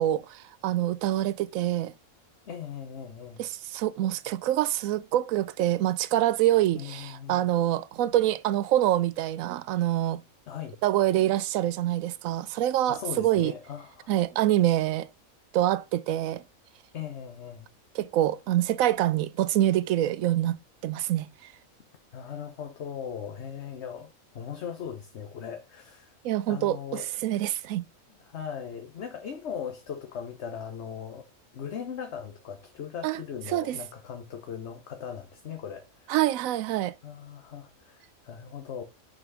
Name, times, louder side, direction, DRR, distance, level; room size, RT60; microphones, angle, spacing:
voice 1, 0.0-1.9 3.4-10.2 10.8-13.5 14.1-15.1 15.5-16.4 17.9-20.6 20.8-21.5 26.2-27.8 33.0-33.2 33.5-33.8 36.1-36.9, right 13 dB, 75° right, 1.0 m, -26 dB
voice 2, 2.5-3.4 6.7-7.5 10.5-10.8 12.8-14.1 16.9-17.7 22.1-26.1 26.5-27.1 28.2-31.3 31.5-36.1 37.0-38.8, left 8 dB, 55° left, 1.1 m, -39 dB
6.0 x 5.2 x 4.8 m
omnidirectional pair, 1.5 m